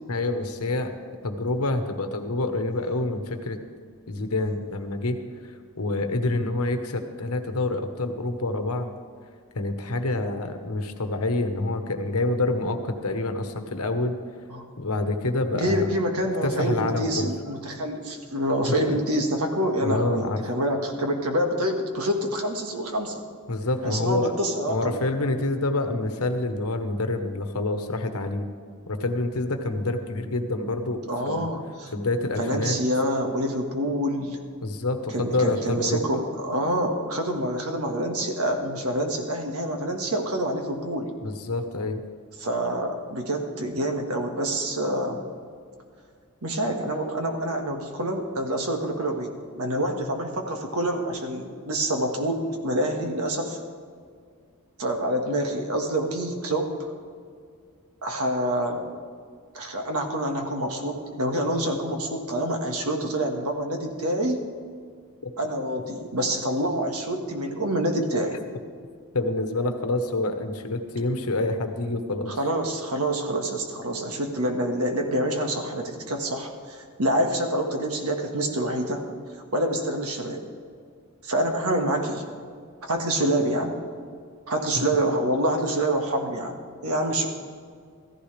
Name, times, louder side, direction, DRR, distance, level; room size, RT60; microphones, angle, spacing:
voice 1, 0.1-0.9 1.2-3.6 4.1-5.2 5.4-5.5 5.8-8.9 9.5-14.2 14.8-15.9 16.4-17.3 18.6-18.8 19.8-20.5 23.5-24.3 24.7-28.5 28.9-31.5 31.9-32.8 34.6-36.2 41.2-42.0 65.2-65.3 68.3-68.4 69.1-72.4, left 2 dB, 80° left, 7 dB, 1.2 m, -27 dB
voice 2, 15.5-23.2 23.8-25.0 31.1-31.9 32.4-34.4 35.1-41.1 42.4-45.2 46.4-53.6 54.8-56.7 58.0-58.8 59.5-64.5 65.4-68.4 72.3-79.1 79.5-80.4 81.2-82.2 82.8-83.8 84.5-87.3, right 1 dB, 75° right, 3 dB, 1.7 m, -27 dB
15.0 x 15.0 x 3.4 m, 2.1 s
head